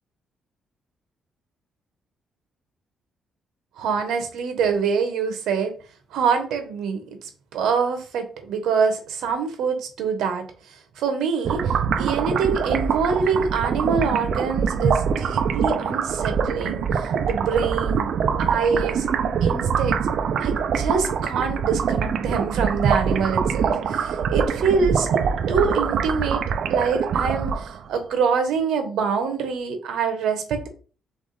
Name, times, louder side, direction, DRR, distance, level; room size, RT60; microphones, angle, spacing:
voice 1, 3.8-5.7 6.1-18.1 18.4-19.1 19.4-20.0 20.4-25.1 25.5-26.4 26.7-30.7, right 5 dB, 80° right, 7 dB, 1.1 m, -25 dB
sound 1, 11.5-27.9, right 6 dB, 60° right, 0.4 m, -24 dB
3.6 x 3.5 x 4.0 m, 0.38 s
cardioid pair, 130°, 0 cm